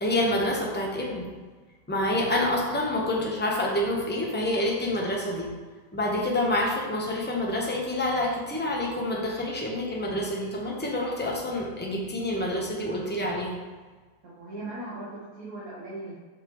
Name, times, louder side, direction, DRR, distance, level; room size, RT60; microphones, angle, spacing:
voice 1, 0.0-1.3 1.9-5.5 5.9-13.6, left 1 dB, 10° left, -2 dB, 0.7 m, -27 dB
voice 2, 14.2-16.2, right 2 dB, 60° right, -6 dB, 1.5 m, -38 dB
6.3 x 5.9 x 3.1 m, 1.4 s
omnidirectional pair, 1.8 m